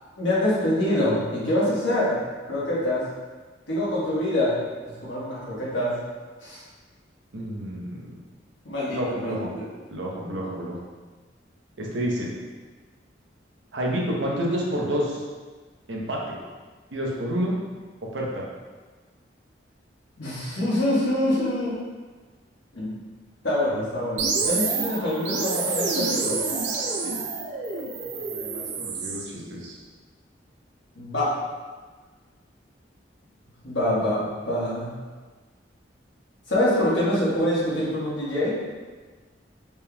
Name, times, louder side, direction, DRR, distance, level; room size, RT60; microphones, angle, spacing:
voice 1, 0.2-2.1 2.5-3.0 3.7-4.5 5.0-5.9 6.4-6.6 8.6-9.3 20.2-21.7 22.7-23.0 23.4-26.4 30.9-31.3 33.6-34.9 36.5-38.5, left 1 dB, 90° left, -8 dB, 1.4 m, -25 dB
voice 2, 7.3-8.2 8.9-9.5 9.9-10.8 11.8-12.3 13.7-15.2 15.9-16.4 16.9-17.6 18.0-18.4 27.0-27.1 28.1-29.8, equal, 85° right, -3 dB, 0.8 m, -29 dB
sound 1, 24.2-29.3, right 4 dB, 65° right, 0.4 m, -28 dB
4.3 x 3.5 x 2.2 m, 1.4 s
head